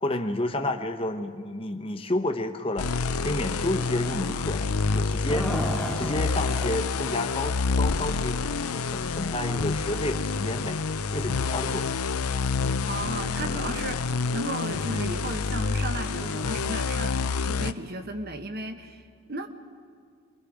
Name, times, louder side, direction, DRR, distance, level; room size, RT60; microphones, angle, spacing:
voice 1, 0.0-10.8 11.1-12.1, left 1 dB, 25° left, 5 dB, 0.9 m, -31 dB
sound 1, 2.8-17.7, left 4 dB, 80° left, 0.6 m, -28 dB
sound 2, 5.1-7.1 7.4-7.5 8.0-8.1 9.0-9.1 9.5-9.6, left 1 dB, ahead, 1.4 m, -33 dB
voice 2, 12.9-19.5, right 1 dB, 45° right, 7 dB, 1.2 m, -35 dB
27.0 x 22.0 x 5.0 m, 2.2 s
head